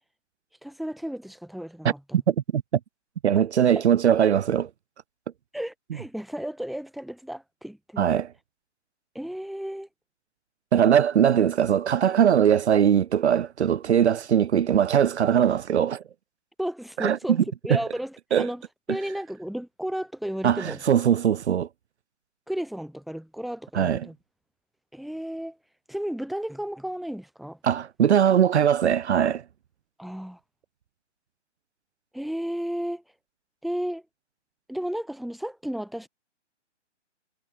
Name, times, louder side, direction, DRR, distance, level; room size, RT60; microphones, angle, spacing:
voice 1, 0.6-2.2 3.8-3.9 5.5-8.1 9.2-9.9 16.6-18.6 18.9-20.8 22.5-24.2 24.9-25.6 25.9-27.6 30.0-30.4 32.1-33.0 33.6-34.0 34.7-36.1, equal, ahead, 1.7 m, -33 dB
voice 2, 2.1-2.6 3.2-4.7 8.0-8.3 10.7-16.0 17.0-17.2 17.7-17.8 18.3-18.5 20.4-21.7 23.7-24.1 27.6-29.4, right 9 dB, 65° right, 0.9 m, -21 dB
hypercardioid pair, 155°, 36 cm